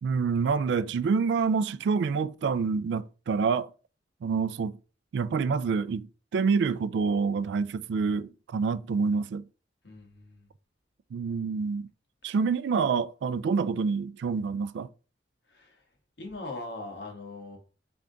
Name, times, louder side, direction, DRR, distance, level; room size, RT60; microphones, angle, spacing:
voice 1, 0.0-3.7 4.2-4.8 5.1-6.1 6.3-9.4 11.1-11.9 12.2-14.9, right 5 dB, 70° right, 0.3 m, -27 dB
voice 2, 9.8-10.5 15.5-15.8 16.2-17.6, left 2 dB, 70° left, 1.5 m, -40 dB
3.7 x 3.4 x 3.8 m
head